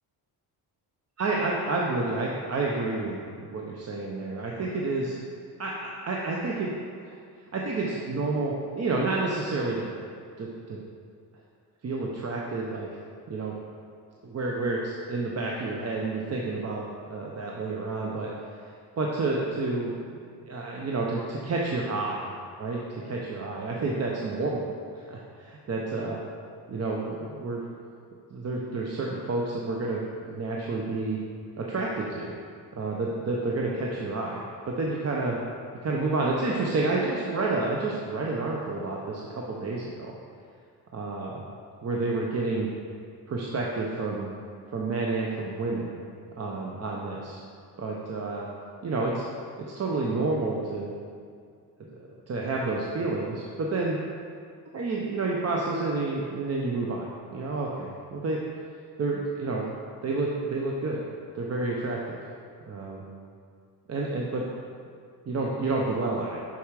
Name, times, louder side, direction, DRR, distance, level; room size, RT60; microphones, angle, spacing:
voice 1, 1.2-5.1 5.6-6.7 7.0-7.2 7.5-9.9 10.4-10.8 11.8-12.9 13.3-13.5 14.2-18.3 19.0-19.9 20.4-22.3 22.6-24.7 24.9-26.2 26.7-27.6 28.3-31.2 31.6-32.3 32.7-35.4 35.8-40.1 40.9-41.4 41.8-42.7 43.3-44.3 44.7-45.9 46.4-47.4 47.8-48.5 48.8-49.3 49.7-50.9 51.9-54.0 54.7-58.4 59.0-59.6 60.0-61.0 61.3-62.0 62.7-63.0 63.9-64.4 65.3-66.4, right 3 dB, 40° right, -2 dB, 0.8 m, -29 dB
6.9 x 6.2 x 4.8 m, 2.2 s
cardioid pair, 115°, 39 cm